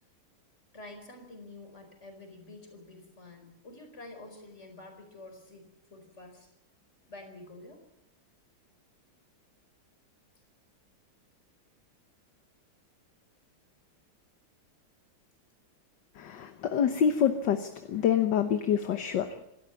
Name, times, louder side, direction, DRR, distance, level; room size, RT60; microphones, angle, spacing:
voice 1, 0.7-6.5 7.1-7.8 16.4-16.6, left 2 dB, 30° left, 5 dB, 4.9 m, -48 dB
voice 2, 16.1-19.4, left 8 dB, 60° left, 8 dB, 1.6 m, -27 dB
26.0 x 13.0 x 8.1 m, 0.86 s
omnidirectional pair, 2.3 m